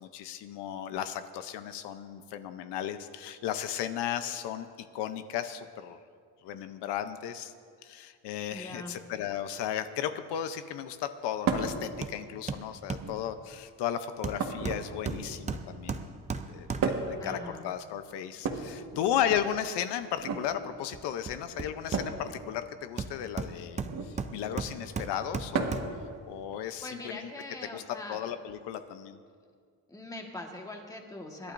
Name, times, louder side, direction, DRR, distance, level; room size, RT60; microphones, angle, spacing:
voice 1, 0.0-4.7 4.9-6.0 6.4-7.5 7.8-16.1 16.5-23.8 24.1-25.9 26.3-27.3 27.7-27.8 28.1-29.2, left 10 dB, 90° left, 10 dB, 0.8 m, -35 dB
voice 2, 8.5-9.0 17.2-17.6 26.8-28.2 29.9-31.5, left 2 dB, 10° left, 1 dB, 1.5 m, -42 dB
sound 1, 11.5-11.8 12.9-13.4 14.4-15.5 16.8-17.2 18.4-19.4 20.1-20.5 21.9-22.2 23.8-24.2 25.5-25.9 27.4-27.5 28.7-28.8, right 5 dB, 55° right, 1.6 m, -32 dB
Hammer, 12.0-12.2 12.5-13.1 14.2-17.1 20.9-22.4 23.0-26.1 26.5-26.6, right 4 dB, 20° right, 0.5 m, -36 dB
26.5 x 11.5 x 2.6 m, 2.1 s
cardioid pair, 150°, 40 cm